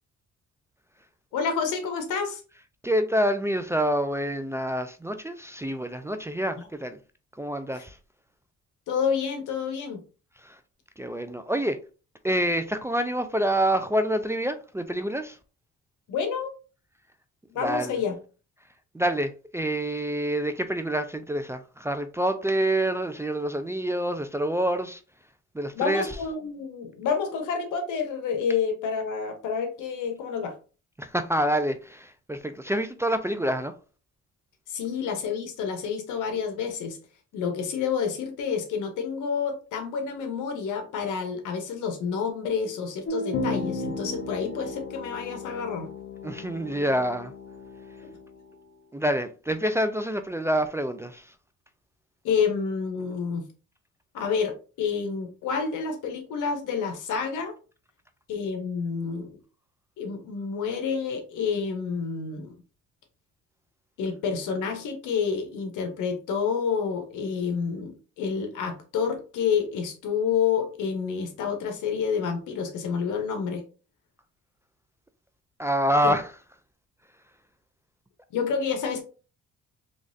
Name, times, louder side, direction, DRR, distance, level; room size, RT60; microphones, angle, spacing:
voice 1, 1.3-2.4 7.8-7.9 8.9-10.0 16.1-16.5 17.5-18.1 25.7-30.5 34.7-37.0 37.3-45.9 52.2-53.5 54.1-57.5 58.3-59.3 60.0-62.5 64.0-73.6 76.0-76.1 78.3-79.0, left 6 dB, 85° left, 1.0 m, -29 dB
voice 2, 2.8-7.0 7.4-8.0 10.4-10.6 11.0-11.8 12.2-15.4 17.6-18.0 18.9-25.0 25.5-26.1 31.0-33.7 46.2-47.3 48.9-51.3 75.6-76.3, right 1 dB, 10° right, 0.3 m, -27 dB
sound 1, 43.0-48.4, left 2 dB, 45° left, 0.7 m, -35 dB
3.7 x 3.1 x 2.6 m
cardioid pair, 90°, 30 cm